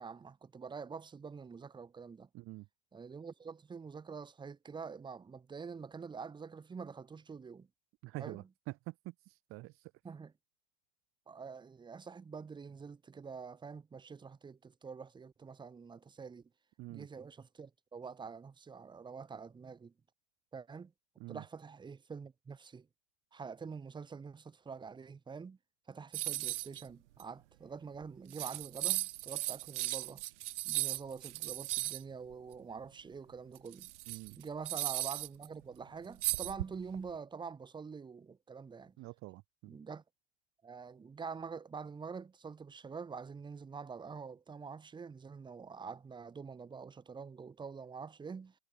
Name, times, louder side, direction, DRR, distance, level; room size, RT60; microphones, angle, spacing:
voice 1, 0.0-2.3 2.9-7.7 8.2-8.5 10.0-10.3 11.3-16.5 16.9-19.9 20.5-20.9 21.3-22.9 23.3-25.6 25.9-30.2 30.6-33.9 34.4-38.9 39.7-40.0 40.6-48.6, right 5 dB, 10° right, 2.4 m, -46 dB
voice 2, 2.3-2.6 8.0-8.4 8.9-9.7 16.8-17.1 21.2-21.4 34.1-34.4 39.0-39.8, right 21 dB, 35° right, 1.8 m, -46 dB
sound 1, 26.1-26.8 27.2-27.3 28.0-28.1 28.3-32.0 33.5-35.5 36.2-37.0, right 16 dB, 70° right, 0.8 m, -36 dB
hypercardioid pair, 135°, 36 cm